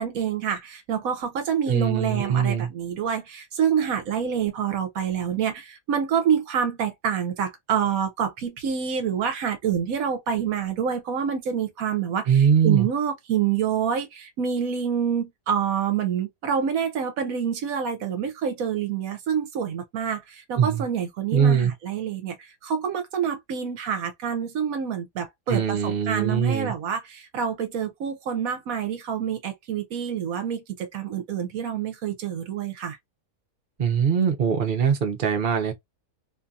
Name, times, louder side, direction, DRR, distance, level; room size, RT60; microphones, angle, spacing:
voice 1, 0.0-33.0, right 8 dB, 75° right, 1.0 m, -27 dB
voice 2, 1.7-2.7 12.3-12.9 20.6-20.9 21.3-21.7 25.5-26.7 33.8-35.7, right 7 dB, 50° right, 0.6 m, -22 dB
2.7 x 2.6 x 2.3 m
omnidirectional pair, 1.5 m